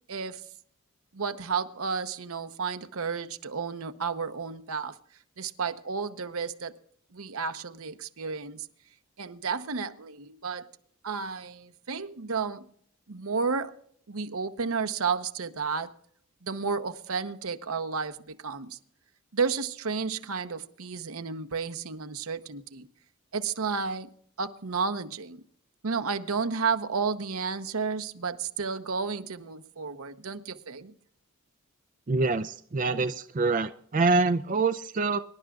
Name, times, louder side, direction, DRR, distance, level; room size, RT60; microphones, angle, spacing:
voice 1, 0.1-0.5 1.1-5.0 5.4-6.7 7.1-8.7 9.2-10.7 11.0-12.6 13.1-13.8 14.1-15.9 16.4-18.8 19.3-22.9 23.3-24.1 24.4-25.4 25.8-30.9, right 5 dB, 80° right, 0.9 m, -32 dB
voice 2, 32.1-35.2, right 3 dB, 35° right, 0.4 m, -25 dB
25.0 x 11.5 x 2.4 m
head